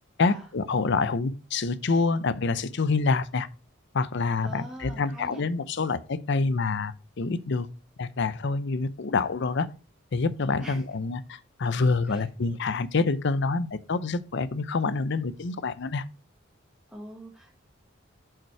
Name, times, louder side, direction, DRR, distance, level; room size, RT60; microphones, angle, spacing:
voice 1, 0.2-3.5 3.9-7.7 8.0-9.7 10.1-16.0, left 4 dB, 60° left, 0.6 m, -27 dB
voice 2, 4.4-5.5 10.6-10.8 12.1-12.3 16.9-17.6, right 1 dB, 5° right, 1.5 m, -43 dB
7.4 x 5.4 x 4.6 m
head